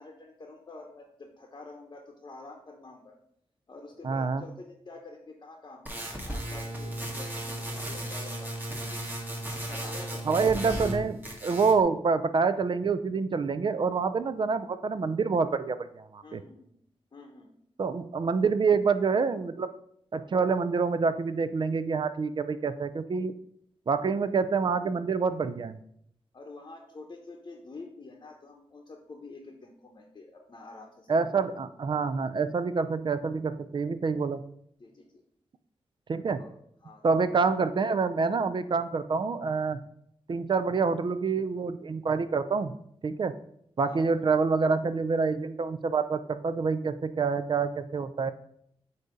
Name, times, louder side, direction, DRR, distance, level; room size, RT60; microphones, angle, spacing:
voice 1, 0.0-3.1 3.7-9.0 9.5-10.5 16.2-16.7 17.1-17.5 26.3-31.3 34.8-35.2 36.4-36.5 36.8-37.3 43.8-44.2, left 3 dB, 40° left, 1 dB, 0.8 m, -47 dB
voice 2, 4.0-4.4 10.3-16.4 17.8-19.7 20.1-23.3 23.9-25.8 31.1-34.4 36.1-36.4 37.0-39.8 40.3-42.7 43.0-43.4 43.8-48.3, right 5 dB, 50° right, 12 dB, 0.4 m, -27 dB
sound 1, 5.9-11.0 11.2-11.8, right 1 dB, 20° right, 1.3 m, -35 dB
8.2 x 2.8 x 5.0 m, 0.70 s
wide cardioid pair, 100°, 11 cm